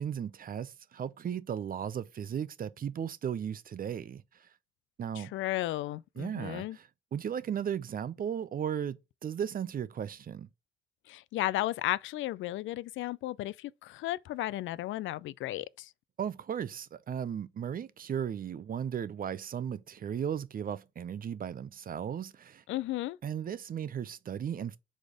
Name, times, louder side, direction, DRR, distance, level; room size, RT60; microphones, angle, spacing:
voice 1, 0.0-4.2 5.0-5.3 6.2-6.8 7.1-10.5 16.2-22.6 23.2-24.8, right 8 dB, 45° right, 0.7 m, -36 dB
voice 2, 5.1-6.8 11.1-15.9 22.7-23.2, left 15 dB, 75° left, 0.4 m, -34 dB
5.1 x 4.1 x 4.9 m
cardioid pair, 90°, 20 cm